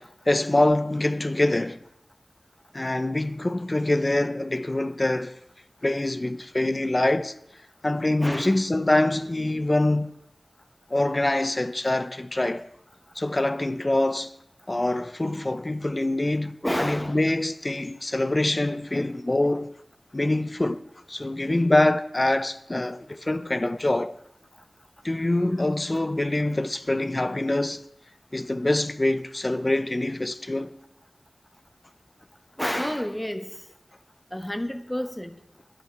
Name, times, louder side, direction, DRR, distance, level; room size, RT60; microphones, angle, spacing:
voice 1, 0.0-1.8 2.7-5.3 5.8-7.3 7.8-10.1 10.9-12.7 13.2-14.3 14.7-19.7 20.1-20.8 21.1-24.1 25.0-27.8 28.3-30.8, left 1 dB, 35° left, 0.6 m, -25 dB
voice 2, 8.2-8.6 16.6-17.2 32.6-33.5 34.3-35.4, equal, 15° left, 1.1 m, -29 dB
12.0 x 11.0 x 4.6 m
wide cardioid pair, 50°, 0 cm